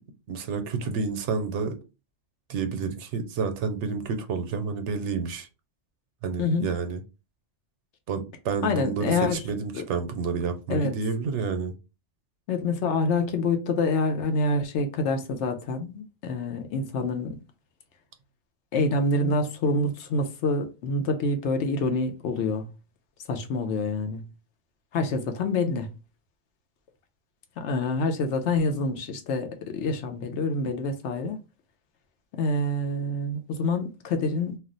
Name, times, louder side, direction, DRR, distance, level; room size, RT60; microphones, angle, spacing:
voice 1, 0.3-1.7 2.5-5.5 6.2-7.0 8.1-11.7, right 5 dB, 85° right, 0.9 m, -29 dB
voice 2, 6.4-6.7 8.6-9.4 9.7-9.8 10.7-10.9 12.5-17.4 18.7-22.7 23.3-24.2 24.9-25.9 27.6-31.4 32.3-34.6, left 2 dB, 80° left, 0.9 m, -26 dB
2.4 x 2.1 x 3.8 m
omnidirectional pair, 1.2 m